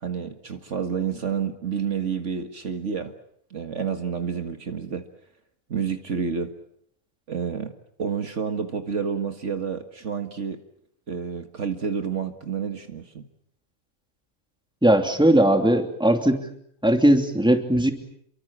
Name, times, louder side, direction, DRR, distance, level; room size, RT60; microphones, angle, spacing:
voice 1, 0.0-3.1 3.5-5.1 5.7-6.5 7.3-7.7 8.0-10.6 11.1-13.3, right 6 dB, 60° right, 7 dB, 2.0 m, -29 dB
voice 2, 14.8-16.4 16.8-17.9, right 1 dB, 5° right, 5 dB, 2.8 m, -18 dB
29.5 x 23.5 x 7.4 m, 0.70 s
omnidirectional pair, 1.4 m